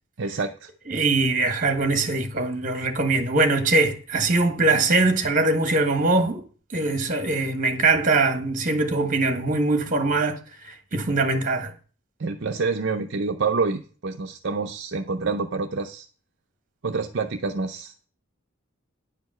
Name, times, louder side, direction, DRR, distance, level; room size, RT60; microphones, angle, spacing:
voice 1, 0.2-0.7 12.2-16.1 16.8-17.9, right 4 dB, 55° right, 0.6 m, -27 dB
voice 2, 0.9-6.4 6.7-11.7, right 3 dB, 40° right, 1.5 m, -22 dB
10.0 x 5.2 x 7.7 m
head